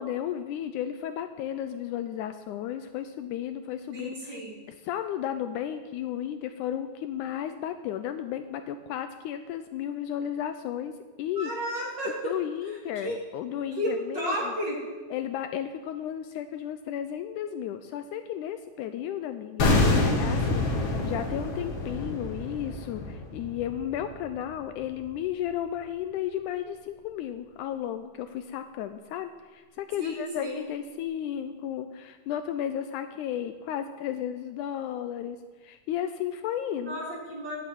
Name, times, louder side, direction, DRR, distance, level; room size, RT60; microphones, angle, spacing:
voice 1, 0.0-4.4 4.7-10.9 11.2-11.5 12.1-14.5 15.1-20.7 21.0-37.0, left 10 dB, 80° left, 9 dB, 1.9 m, -34 dB
voice 2, 3.9-4.6 11.4-12.3 12.9-13.2 13.8-14.8 30.0-30.7 36.8-37.6, equal, 35° right, -3 dB, 3.0 m, -32 dB
sound 1, 19.6-24.6 24.9-25.0, left 2 dB, 50° left, 2.7 m, -27 dB
10.5 x 8.4 x 9.1 m, 1.4 s
omnidirectional pair, 3.8 m